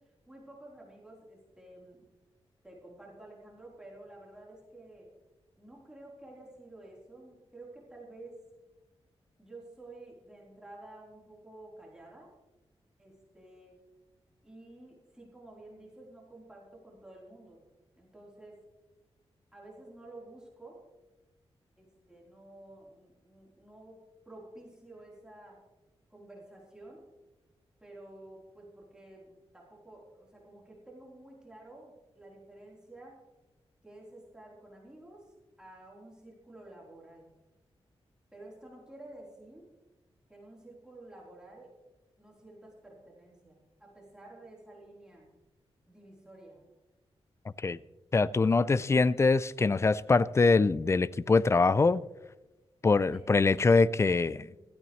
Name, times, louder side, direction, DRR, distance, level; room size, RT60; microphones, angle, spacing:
voice 1, 0.3-2.1 2.6-5.1 5.6-8.4 9.4-12.3 13.0-13.8 14.4-17.7 18.0-18.6 19.5-20.9 21.8-25.6 26.1-27.1 27.8-33.2 33.8-37.3 38.3-39.7 40.3-41.7 42.2-45.3 45.9-46.6 53.0-53.7 54.4-54.6, right 2 dB, 5° right, 3.7 m, -51 dB
voice 2, 48.1-52.0 52.8-54.5, left 4 dB, 25° left, 0.4 m, -24 dB
16.0 x 13.5 x 3.2 m
wide cardioid pair, 125°, 10 cm